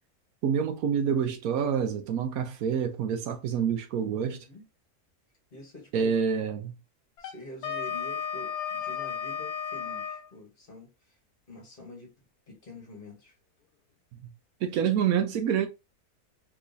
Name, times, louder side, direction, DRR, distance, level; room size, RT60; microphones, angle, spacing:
voice 1, 0.4-4.4 5.9-6.7 14.2-14.3 14.6-15.7, right 7 dB, 75° right, 1.0 m, -27 dB
voice 2, 4.2-4.6 5.5-6.1 7.2-11.2 11.5-13.4, left 1 dB, 40° left, 1.1 m, -47 dB
Wind instrument woodwind instrument, 7.2-10.3, left 7 dB, 80° left, 1.2 m, -34 dB
3.6 x 3.0 x 2.5 m
omnidirectional pair, 1.6 m